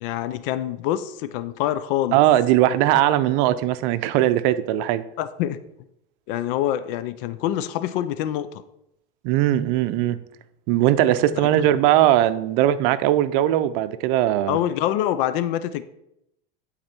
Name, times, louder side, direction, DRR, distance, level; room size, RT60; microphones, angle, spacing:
voice 1, 0.0-2.2 5.2-5.6 6.3-8.5 11.3-11.5 14.5-15.8, left 12 dB, 65° left, 13 dB, 0.7 m, -25 dB
voice 2, 2.1-5.0 9.2-10.2 10.7-14.6, right 13 dB, 60° right, 13 dB, 0.7 m, -19 dB
11.0 x 4.2 x 4.4 m, 0.80 s
supercardioid pair, 110°, 30 cm